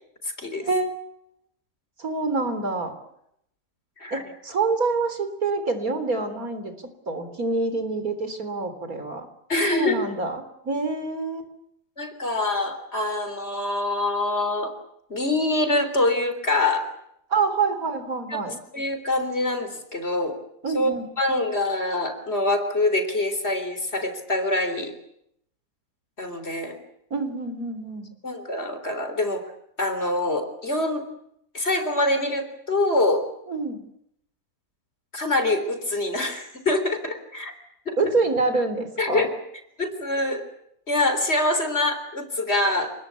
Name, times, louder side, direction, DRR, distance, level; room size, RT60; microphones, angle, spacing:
voice 1, 0.6-0.9 2.0-2.9 4.1-6.7 7.1-9.3 9.7-11.5 17.3-18.6 20.6-21.1 27.1-28.1 33.5-33.8 38.0-39.3, right 3 dB, 65° right, 9 dB, 4.1 m, -26 dB
voice 2, 9.5-10.1 12.0-14.7 15.1-16.9 18.3-20.4 20.7-20.9 21.2-24.9 26.2-26.8 28.2-29.4 29.8-31.1 31.5-33.3 35.1-37.5 37.9-38.0 39.0-39.3 39.8-40.4 40.9-42.9, left 2 dB, 40° left, 9 dB, 4.1 m, -25 dB
28.0 x 21.0 x 8.4 m, 0.75 s
omnidirectional pair, 1.6 m